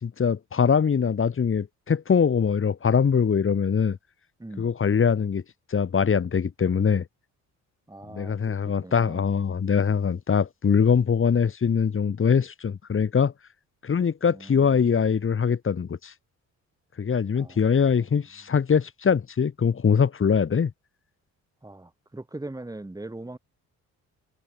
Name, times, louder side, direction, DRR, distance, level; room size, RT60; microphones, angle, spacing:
voice 1, 0.0-4.0 4.6-5.4 5.7-7.0 8.1-13.3 13.8-16.1 17.0-20.7, left 6 dB, 45° left, 4.4 m, -22 dB
voice 2, 4.4-4.7 7.9-9.3 14.3-15.0 17.4-18.0 21.6-23.4, right 2 dB, 10° right, 5.8 m, -41 dB
cardioid pair, 90°, 30 cm